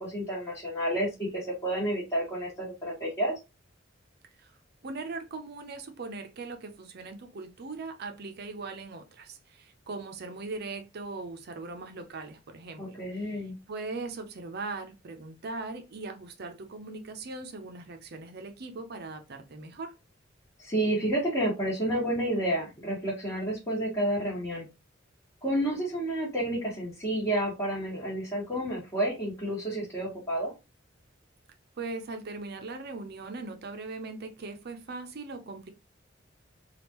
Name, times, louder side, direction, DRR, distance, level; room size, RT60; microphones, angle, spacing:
voice 1, 0.0-3.3 12.8-13.5 20.6-24.7 25.4-30.5, right 1 dB, 20° left, 1.3 m, -30 dB
voice 2, 4.8-13.4 13.7-19.9 31.8-35.7, right 3 dB, 55° right, 0.6 m, -40 dB
3.5 x 2.4 x 2.9 m
head